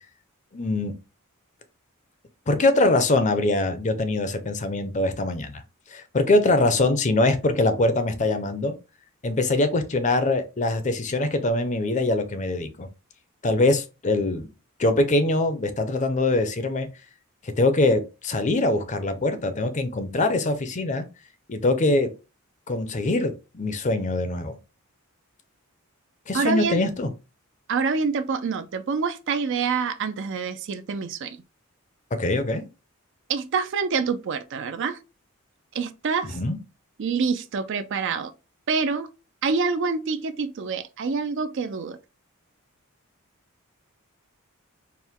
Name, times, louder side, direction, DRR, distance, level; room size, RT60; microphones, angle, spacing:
voice 1, 0.5-0.9 2.5-5.6 5.9-8.7 9.2-12.9 13.4-14.5 14.8-16.9 17.4-21.0 21.5-22.1 22.7-24.5 26.3-27.1 32.1-32.7 36.3-36.6, left 2 dB, 35° left, 0.6 m, -23 dB
voice 2, 26.3-26.8 27.7-31.4 33.3-35.0 35.7-36.4 37.0-38.3 38.7-39.1 39.4-42.0, right 5 dB, 55° right, 0.4 m, -26 dB
4.5 x 2.1 x 3.5 m
head